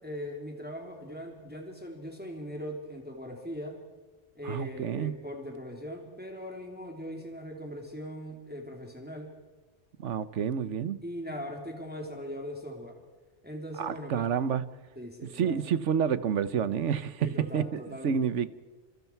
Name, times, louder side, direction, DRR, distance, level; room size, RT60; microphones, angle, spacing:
voice 1, 0.0-3.8 4.3-9.3 11.0-13.0 13.4-14.3 15.0-15.6 17.2-18.2, equal, 10° right, 1 dB, 3.1 m, -40 dB
voice 2, 4.4-5.1 10.0-11.0 13.8-14.9 15.2-18.5, right 7 dB, 85° right, 15 dB, 1.2 m, -29 dB
28.5 x 27.0 x 4.6 m, 1.3 s
omnidirectional pair, 1.2 m